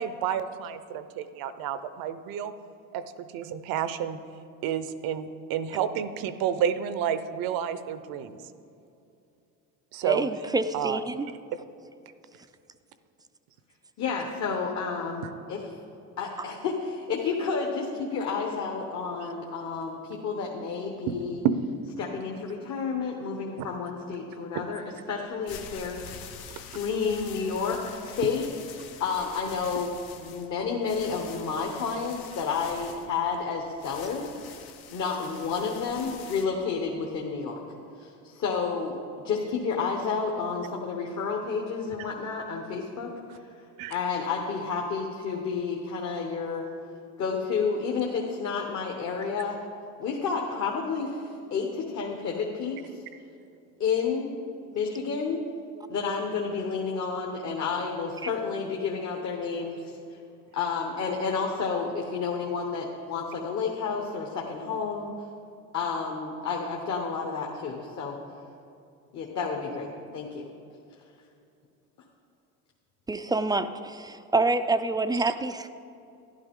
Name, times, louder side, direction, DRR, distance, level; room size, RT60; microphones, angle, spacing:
voice 1, 0.0-2.5 2.9-4.2 4.6-8.3 9.9-10.3 10.7-11.0 11.5-11.6 21.1-21.2 21.4-21.6 23.6-23.7 24.5-24.6 43.8-43.9, right 9 dB, 70° right, 12 dB, 0.7 m, -30 dB
voice 2, 10.0-11.3 73.1-75.7, right 3 dB, 10° right, 10 dB, 0.4 m, -27 dB
voice 3, 14.0-15.6 16.2-21.4 22.0-24.8 25.1-26.2 26.6-28.5 29.0-34.3 34.9-37.6 38.0-39.0 39.2-43.1 43.9-46.6 47.2-49.6 50.0-52.8 53.8-54.3 54.6-55.4 55.9-59.9 60.5-65.1 65.7-68.2 69.1-70.4, left 5 dB, 45° left, 0 dB, 1.3 m, -30 dB
sound 1, 25.2-36.5, left 7 dB, 70° left, 1.1 m, -45 dB
11.5 x 11.5 x 3.7 m, 2.6 s
supercardioid pair, 95°, 37 cm